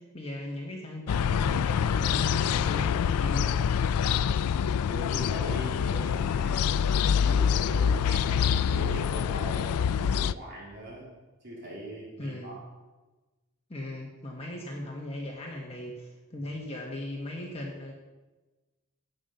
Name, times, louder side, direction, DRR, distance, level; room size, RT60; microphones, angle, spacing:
voice 1, 0.0-3.6 12.2-12.6 13.7-17.9, left 1 dB, 25° left, -1 dB, 1.4 m, -38 dB
sound 1, 1.1-10.3, left 7 dB, 85° left, 0.3 m, -26 dB
voice 2, 4.1-6.8 7.2-11.1 11.4-12.6, right 1 dB, 50° right, -5 dB, 3.2 m, -41 dB
12.0 x 8.0 x 5.6 m, 1.2 s
head